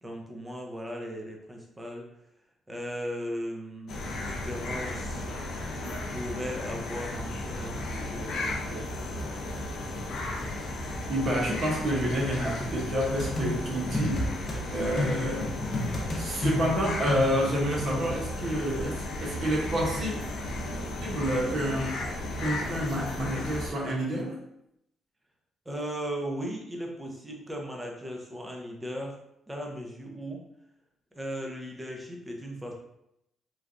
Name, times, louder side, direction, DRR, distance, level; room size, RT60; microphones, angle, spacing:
voice 1, 0.0-2.1 2.7-5.3 5.7-8.9 25.7-29.2 29.5-30.4 31.1-32.7, equal, 15° right, 1 dB, 0.6 m, -37 dB
sound 1, 3.9-23.7, left 1 dB, 75° left, 0.5 m, -35 dB
voice 2, 11.1-14.2 14.7-15.6 15.9-20.1 21.0-22.0 22.4-24.4, equal, 55° right, -2 dB, 0.9 m, -29 dB
sound 2, 13.2-14.6 15.0-18.1, left 1 dB, 45° left, 0.8 m, -31 dB
3.2 x 2.3 x 2.5 m, 0.81 s
cardioid pair, 90°, 0 cm